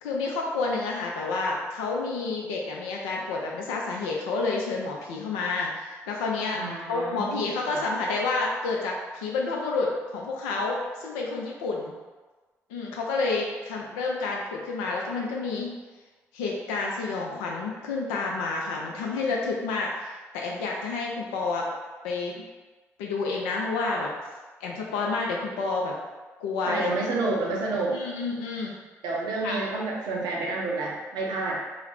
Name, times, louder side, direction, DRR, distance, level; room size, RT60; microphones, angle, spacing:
voice 1, 0.0-6.6 6.9-11.9 12.7-15.7 16.3-21.7 22.0-22.4 23.0-24.1 24.6-25.9 26.4-26.9 27.9-28.8 29.4-29.6, left 3 dB, 80° left, -1 dB, 0.4 m, -29 dB
voice 2, 6.5-7.8 26.7-28.0 29.0-31.6, right 3 dB, 70° right, -3 dB, 0.5 m, -29 dB
2.3 x 2.0 x 3.2 m, 1.3 s
hypercardioid pair, 40°, 7 cm